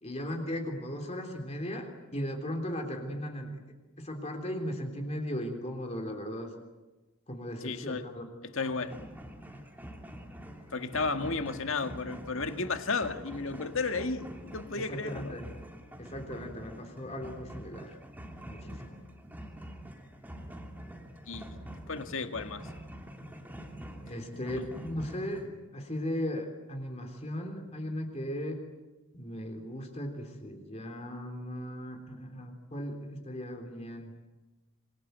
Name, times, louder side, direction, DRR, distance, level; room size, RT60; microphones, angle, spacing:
voice 1, 0.0-3.5 4.0-6.5 7.3-8.3 9.5-9.6 14.8-15.5 16.0-18.0 18.4-19.0 24.0-28.6 29.1-34.1, equal, 30° left, 4 dB, 3.5 m, -37 dB
voice 2, 7.6-8.1 8.5-8.9 10.7-15.3 21.3-21.6 21.9-22.7, left 4 dB, 70° left, 7 dB, 1.9 m, -33 dB
sound 1, 8.6-25.5, equal, 10° right, 2.8 m, -46 dB
26.5 x 23.0 x 9.3 m, 1.1 s
head